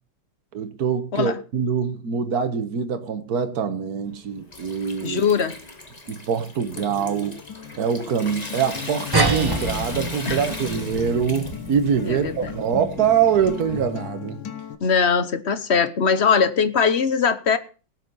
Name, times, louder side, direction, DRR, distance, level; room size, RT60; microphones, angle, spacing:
voice 1, 0.5-5.2 6.1-7.3 7.8-14.4, right 7 dB, 55° right, 1.7 m, -24 dB
Water tap faucet / Sink (filling or washing) / Trickle dribble, 4.1-14.0, left 2 dB, 20° left, 2.0 m, -39 dB
voice 2, 5.0-5.6 10.3-10.4 12.1-12.5 14.8-17.6, left 6 dB, 45° left, 1.0 m, -21 dB
Acoustic guitar, 6.8-14.7, left 8 dB, 85° left, 2.0 m, -37 dB
sound 1, 9.1-14.0, right 2 dB, 10° right, 1.7 m, -28 dB
18.0 x 8.2 x 5.5 m
omnidirectional pair, 2.0 m